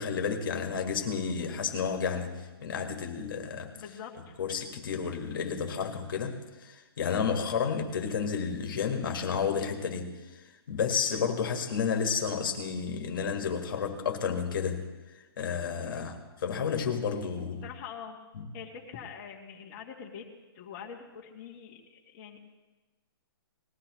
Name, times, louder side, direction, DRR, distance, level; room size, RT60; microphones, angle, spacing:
voice 1, 0.0-3.7 4.4-14.9 15.4-17.6 18.4-18.5, left 6 dB, 60° left, 4 dB, 1.8 m, -31 dB
voice 2, 3.7-4.4 7.0-7.3 11.1-11.2 15.8-16.1 17.6-18.2 18.5-20.2 20.5-22.4, left 7 dB, 25° left, -2 dB, 1.6 m, -44 dB
20.0 x 14.0 x 3.1 m, 1.2 s
hypercardioid pair, 165°, 13 cm